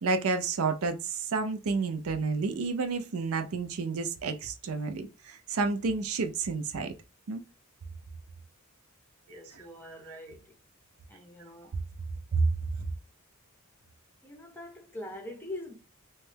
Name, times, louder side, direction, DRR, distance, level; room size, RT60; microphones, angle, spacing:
voice 1, 0.0-6.9 7.3-7.4 9.3-10.2 12.3-12.5, right 4 dB, 65° right, 0.5 m, -30 dB
voice 2, 9.3-10.5 11.1-11.7 14.2-15.7, left 1 dB, 10° left, 0.7 m, -43 dB
3.1 x 2.2 x 3.2 m
head